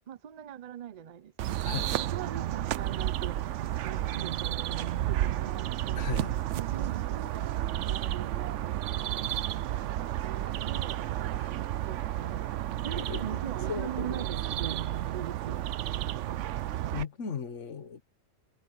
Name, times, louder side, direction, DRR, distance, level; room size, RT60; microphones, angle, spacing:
voice 1, 0.1-1.5 2.0-6.1 6.5-11.3 11.8-14.8 15.1-16.4, right 9 dB, 45° right, 0.6 m, -43 dB
sound 1, 1.4-17.0, right 13 dB, 75° right, 0.9 m, -32 dB
voice 2, 1.6-1.9 5.9-6.3 9.3-9.4 11.4-11.5 13.0-13.4 13.7-14.2 16.9-18.0, left 6 dB, 75° left, 1.6 m, -37 dB
Wind instrument woodwind instrument, 10.2-15.1, right 1 dB, 10° right, 3.1 m, -57 dB
omnidirectional pair, 1.3 m